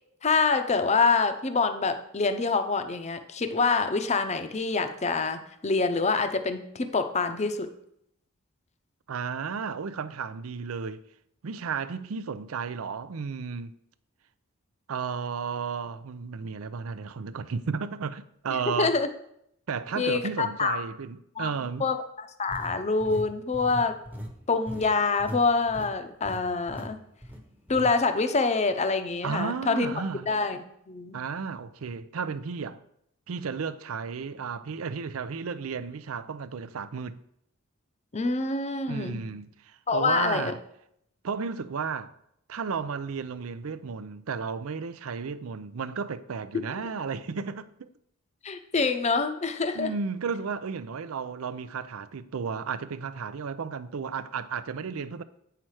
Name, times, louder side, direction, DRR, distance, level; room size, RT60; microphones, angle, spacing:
voice 1, 0.2-7.7 18.7-19.1 20.0-20.8 21.4-21.5 21.8-24.0 24.5-27.0 27.7-29.9 30.3-31.2 38.1-39.2 39.9-40.5 46.7-46.8 48.4-49.9, left 4 dB, 30° left, 0.6 m, -26 dB
voice 2, 9.1-11.0 11.4-13.7 14.9-19.0 19.7-21.9 29.2-30.3 31.1-32.8 33.3-37.2 38.9-40.6 41.2-42.1 42.5-47.9 49.7-55.2, right 5 dB, 85° right, 0.5 m, -33 dB
sound 1, 22.5-25.4 25.7-25.9 26.2-26.4 26.7-26.9 27.2-27.9, equal, 10° right, 0.9 m, -39 dB
8.9 x 5.7 x 4.8 m
head